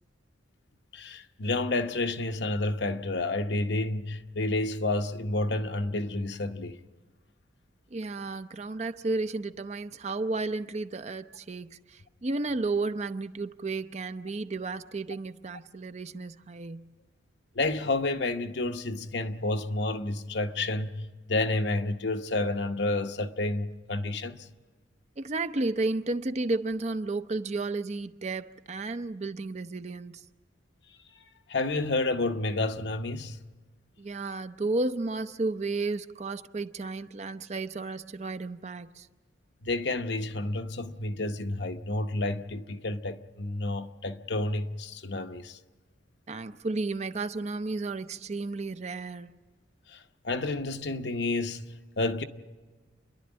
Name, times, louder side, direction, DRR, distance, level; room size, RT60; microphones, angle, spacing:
voice 1, 0.9-6.8 17.5-24.5 31.5-33.4 39.6-45.6 49.9-52.2, left 2 dB, 65° left, 0.9 m, -30 dB
voice 2, 7.9-16.9 25.2-30.2 34.0-39.1 46.3-49.3, right 3 dB, 35° right, 0.5 m, -33 dB
28.5 x 11.5 x 8.7 m
head